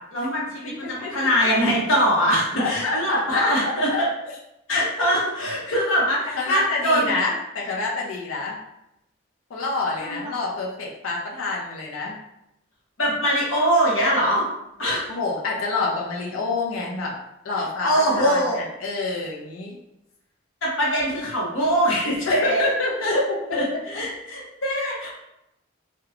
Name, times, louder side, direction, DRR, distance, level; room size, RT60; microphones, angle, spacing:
voice 1, 0.1-4.1 4.7-7.2 10.0-10.4 13.0-14.5 14.8-15.0 17.6-18.6 20.6-22.7 23.1-23.2 23.5-25.1, equal, 75° left, -5 dB, 0.9 m, -22 dB
voice 2, 0.6-1.1 2.6-4.0 6.3-8.6 9.5-12.2 15.1-17.2 17.4-19.7 22.3-23.8 24.8-24.9, left 3 dB, 90° left, -2 dB, 0.6 m, -27 dB
2.9 x 2.2 x 2.4 m, 0.85 s
head